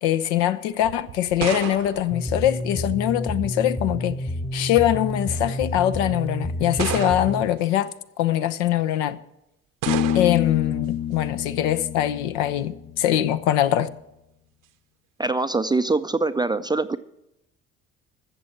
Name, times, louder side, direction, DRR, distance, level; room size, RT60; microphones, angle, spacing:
voice 1, 0.0-4.2 4.5-7.9 8.2-9.2 10.1-13.9, left 12 dB, 65° left, 0.7 m, -23 dB
sound 1, 0.8-3.1 4.2-4.6 5.5-5.6 6.8-7.6 9.8-10.6, right 12 dB, 55° right, 0.8 m, -32 dB
sound 2, 2.1-7.4, left 1 dB, 15° left, 0.9 m, -29 dB
Bass guitar, 9.9-13.4, left 10 dB, 40° left, 0.9 m, -28 dB
voice 2, 15.2-17.0, right 3 dB, 10° right, 0.4 m, -23 dB
15.0 x 7.0 x 5.7 m
figure-of-eight pair, 50°, 39 cm